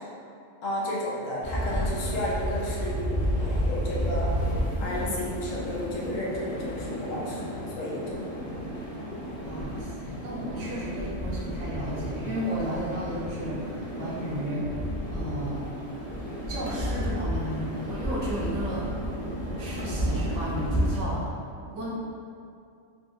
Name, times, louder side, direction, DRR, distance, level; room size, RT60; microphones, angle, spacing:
voice 1, 0.6-3.1 3.4-4.3 4.8-8.3, left 1 dB, 85° left, -5 dB, 1.1 m, -32 dB
sound 1, 1.4-21.0, equal, 45° left, 0.5 m, -31 dB
voice 2, 9.4-14.7 15.1-15.6 16.5-18.9 19.6-21.3 21.7-21.9, equal, 70° right, -6 dB, 1.0 m, -33 dB
3.9 x 2.3 x 2.6 m, 2.4 s
omnidirectional pair, 1.3 m